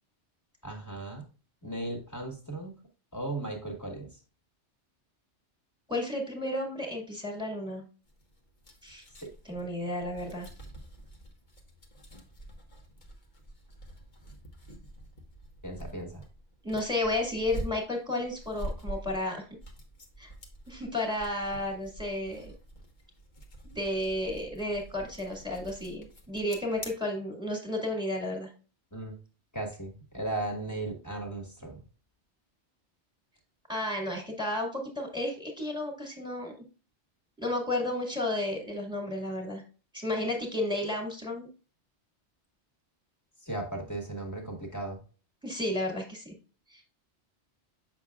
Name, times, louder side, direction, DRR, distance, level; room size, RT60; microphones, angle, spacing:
voice 1, 0.6-1.3 1.6-2.8 3.1-4.2 9.2-9.3 15.6-16.2 28.9-29.1 29.5-31.8 43.4-45.0, right 2 dB, 15° left, 1 dB, 1.6 m, -36 dB
voice 2, 5.9-7.8 8.8-9.0 9.5-10.5 16.6-19.5 20.2-20.3 20.7-22.5 23.6-28.5 33.7-36.5 37.4-39.6 39.9-41.5 45.4-46.3 46.7-46.8, left 1 dB, 5° right, 1 dB, 1.9 m, -32 dB
sound 1, 8.1-26.9, right 1 dB, 45° left, 1.3 m, -46 dB
7.3 x 6.0 x 2.4 m, 0.35 s
omnidirectional pair, 1.2 m